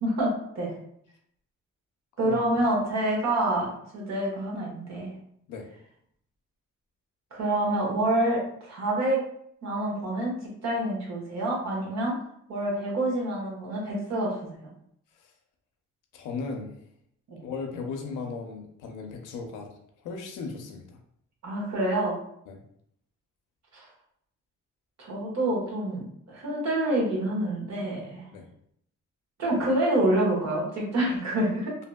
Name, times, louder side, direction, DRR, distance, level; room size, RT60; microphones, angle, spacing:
voice 1, 0.0-0.8 2.2-5.1 7.3-9.2 9.6-10.3 10.6-12.2 12.5-14.7 17.3-17.4 21.4-22.2 23.7-23.8 25.0-28.2 29.4-31.8, right 1 dB, 60° right, -3 dB, 1.2 m, -27 dB
voice 2, 16.1-16.7 17.4-19.7 20.0-20.9 22.5-22.6 28.3-28.5, left 4 dB, 90° left, 3 dB, 0.6 m, -36 dB
2.7 x 2.6 x 2.2 m, 0.69 s
cardioid pair, 90°, 30 cm